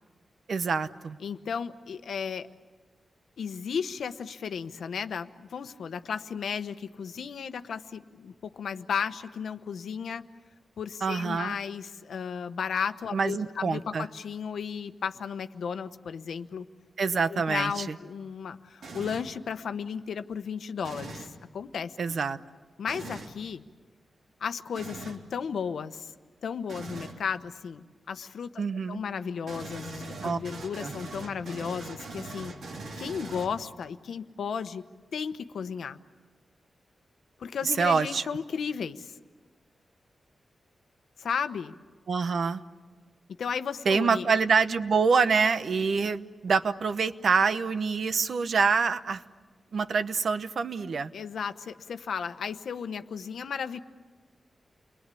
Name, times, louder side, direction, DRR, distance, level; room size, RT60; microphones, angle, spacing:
voice 1, 0.5-1.2 11.0-11.6 13.1-14.1 17.0-18.0 22.0-22.4 28.6-29.0 30.2-30.4 30.8-30.9 37.8-38.2 42.1-42.6 43.8-49.2 49.7-51.1, right 5 dB, 60° right, 12 dB, 0.9 m, -26 dB
voice 2, 1.2-2.5 3.4-10.2 10.8-16.7 17.3-22.2 22.8-23.6 24.4-26.1 26.4-28.6 28.9-32.5 33.0-34.8 35.1-36.0 37.4-39.1 41.2-41.7 43.4-44.3 51.1-53.8, left 6 dB, 85° left, 10 dB, 1.0 m, -34 dB
sound 1, 18.8-19.4 20.8-21.4 22.9-23.3 24.8-25.3 26.7-27.2 29.5-33.8, right 2 dB, 90° right, 2.9 m, -41 dB
29.5 x 22.5 x 8.5 m, 1.4 s
wide cardioid pair, 155°, 0 cm